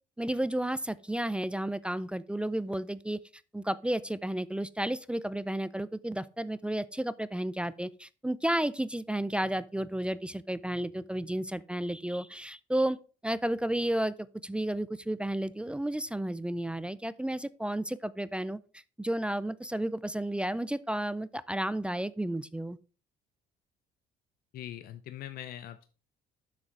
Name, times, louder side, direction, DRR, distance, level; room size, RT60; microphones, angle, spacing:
voice 1, 0.2-3.2 3.5-13.0 13.2-18.6 19.0-22.8, right 1 dB, 5° right, 0.3 m, -32 dB
voice 2, 24.5-25.9, left 12 dB, 60° left, 0.7 m, -42 dB
7.4 x 6.3 x 4.7 m
cardioid pair, 110°, 17 cm